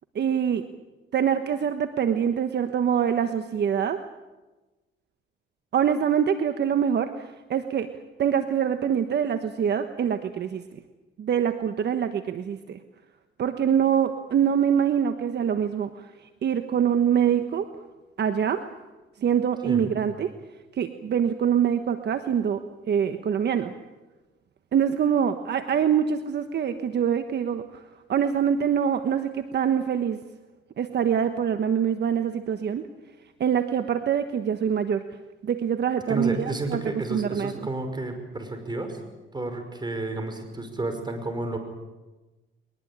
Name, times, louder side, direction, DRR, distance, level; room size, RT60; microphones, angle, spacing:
voice 1, 0.1-0.7 1.1-4.0 5.7-7.9 8.2-10.8 11.2-12.8 13.4-16.1 16.4-17.7 18.2-18.7 19.2-20.3 20.8-23.7 24.7-27.8 28.1-30.2 30.8-32.8 33.4-35.0 35.4-36.8 37.1-37.7, right 8 dB, 60° right, 8 dB, 1.3 m, -24 dB
voice 2, 36.1-39.0 39.3-41.6, right 2 dB, 20° right, 7 dB, 5.5 m, -31 dB
22.0 x 21.0 x 8.9 m, 1.2 s
cardioid pair, 90°, 20 cm